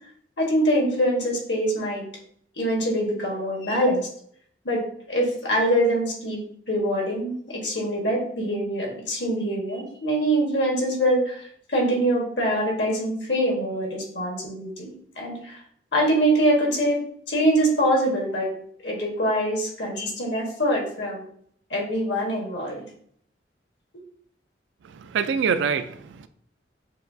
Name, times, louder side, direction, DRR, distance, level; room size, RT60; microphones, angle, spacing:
voice 1, 0.4-2.0 2.6-4.1 4.6-4.8 5.1-6.4 6.7-14.9 15.2-15.6 15.9-17.0 17.3-18.5 18.8-21.2 21.7-22.8, right 1 dB, 70° left, -1 dB, 1.4 m, -24 dB
voice 2, 24.8-26.3, right 6 dB, 80° right, 11 dB, 0.3 m, -25 dB
6.5 x 2.4 x 2.6 m, 0.63 s
head